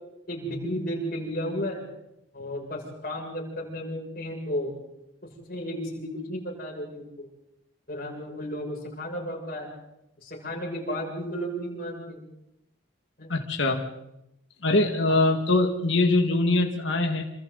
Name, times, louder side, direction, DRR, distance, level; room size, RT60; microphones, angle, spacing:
voice 1, 0.3-1.8 2.3-4.7 5.2-7.2 7.9-9.7 10.2-12.2 13.2-13.3 15.1-15.2, equal, 45° left, -2 dB, 7.1 m, -33 dB
voice 2, 13.3-13.8 14.6-17.2, left 2 dB, 70° left, 2 dB, 2.0 m, -23 dB
28.0 x 26.0 x 4.1 m, 0.85 s
head